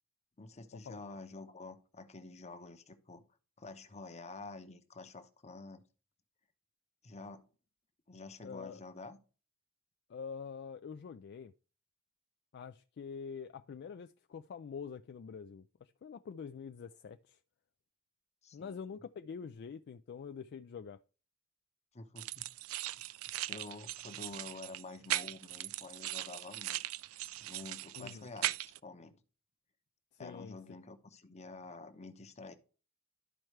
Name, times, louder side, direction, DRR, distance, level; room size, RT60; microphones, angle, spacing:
voice 1, 0.4-3.2 3.6-5.8 7.0-7.5 8.1-9.2 18.4-19.0 21.9-22.5 23.3-26.8 27.4-28.5 28.8-29.2 30.2-32.5, left 3 dB, 35° left, 0.9 m, -49 dB
voice 2, 8.4-8.8 10.1-11.5 12.5-17.4 18.5-21.0 28.0-28.3 30.1-30.8, left 6 dB, 55° left, 0.3 m, -46 dB
sound 1, 22.2-28.8, right 15 dB, 85° right, 0.3 m, -39 dB
12.0 x 4.5 x 3.2 m
head